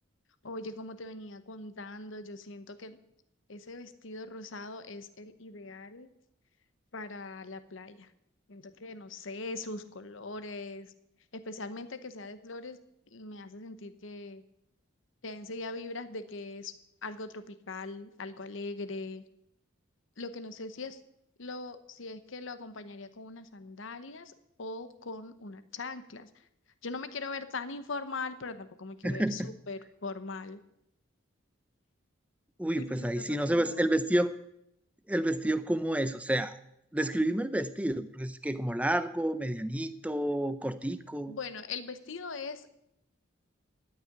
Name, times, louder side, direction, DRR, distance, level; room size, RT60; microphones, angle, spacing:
voice 1, 0.4-3.0 3.5-6.1 6.9-8.1 8.5-10.9 11.3-12.8 13.1-14.4 15.2-16.7 17.0-19.2 20.2-21.0 21.4-24.3 24.6-26.3 26.8-30.6 32.7-33.8 41.3-42.7, left 3 dB, 70° left, 11 dB, 0.9 m, -41 dB
voice 2, 29.0-29.5 32.6-34.3 35.1-36.6 36.9-41.3, right 1 dB, 5° right, 12 dB, 0.5 m, -29 dB
13.0 x 5.7 x 9.0 m, 0.79 s
head